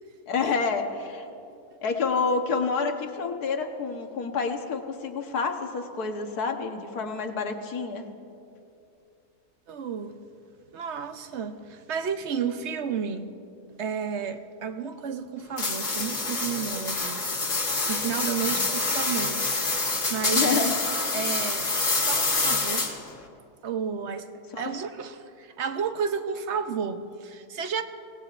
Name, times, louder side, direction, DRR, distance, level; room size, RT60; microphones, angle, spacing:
voice 1, 0.3-1.3 1.8-8.0 18.4-18.7 20.3-20.8 24.5-24.7, left 5 dB, 80° left, 4 dB, 1.6 m, -28 dB
voice 2, 9.7-10.2 10.7-13.3 13.8-17.3 17.9-20.7 21.1-22.9 23.6-24.3 24.6-27.8, right 6 dB, 55° right, 9 dB, 0.9 m, -32 dB
sound 1, 15.6-23.1, left 3 dB, 55° left, 1.8 m, -27 dB
24.0 x 18.0 x 2.5 m, 2.6 s
omnidirectional pair, 1.6 m